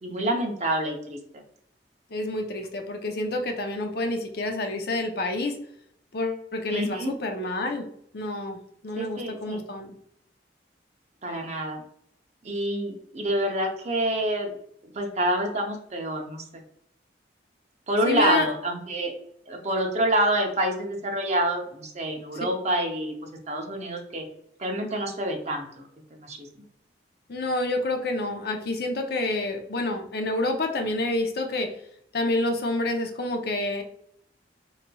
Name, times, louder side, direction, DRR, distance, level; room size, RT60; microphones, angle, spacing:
voice 1, 0.0-1.4 6.7-7.1 9.0-9.6 11.2-11.8 12.4-14.5 14.8-16.6 17.9-19.1 19.5-24.2 24.6-25.8 26.2-26.5, right 1 dB, 40° right, 2 dB, 0.6 m, -27 dB
voice 2, 2.1-5.6 6.1-7.9 8.1-9.9 18.1-18.5 27.3-31.7 32.1-33.8, left 2 dB, 60° left, 4 dB, 0.6 m, -28 dB
3.9 x 3.0 x 2.2 m, 0.69 s
head